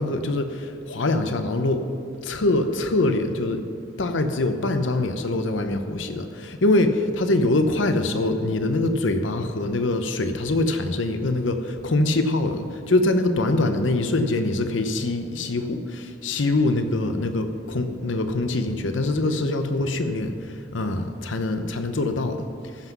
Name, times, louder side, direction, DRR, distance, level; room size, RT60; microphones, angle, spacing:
voice 1, 0.0-1.9 2.2-22.4, left 2 dB, 85° left, 8 dB, 0.8 m, -24 dB
14.5 x 6.1 x 5.9 m, 2.5 s
head